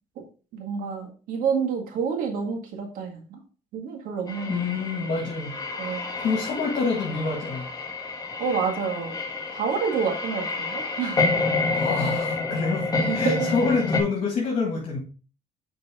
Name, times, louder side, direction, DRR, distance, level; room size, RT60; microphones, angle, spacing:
voice 1, 0.5-3.4 3.7-4.6 5.8-6.2 8.4-9.2 9.5-11.4 13.0-13.5, right 6 dB, 75° right, 3 dB, 1.8 m, -28 dB
sound 1, 4.3-14.0, left 3 dB, 25° left, 1.4 m, -29 dB
voice 2, 4.5-5.6 6.2-7.7 11.7-15.0, left 4 dB, 60° left, -2 dB, 1.9 m, -27 dB
6.7 x 4.6 x 3.6 m, 0.36 s
cardioid pair, 105°, 14 cm